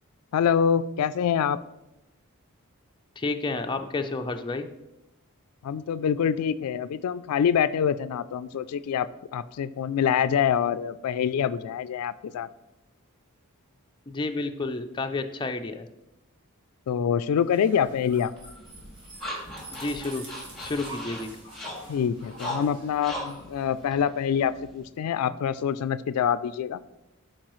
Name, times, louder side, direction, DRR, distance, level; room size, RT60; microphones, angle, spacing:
voice 1, 0.3-1.6 5.6-12.5 16.9-18.3 21.9-26.8, left 8 dB, 85° left, 14 dB, 0.3 m, -25 dB
voice 2, 3.2-4.7 14.1-15.9 19.7-20.2 20.6-21.3, left 3 dB, 20° left, 5 dB, 0.4 m, -30 dB
sound 1, 17.4-24.3, right 2 dB, 60° right, 2.0 m, -47 dB
sound 2, 18.4-24.9, equal, ahead, 1.9 m, -39 dB
12.0 x 4.6 x 3.1 m, 0.91 s
head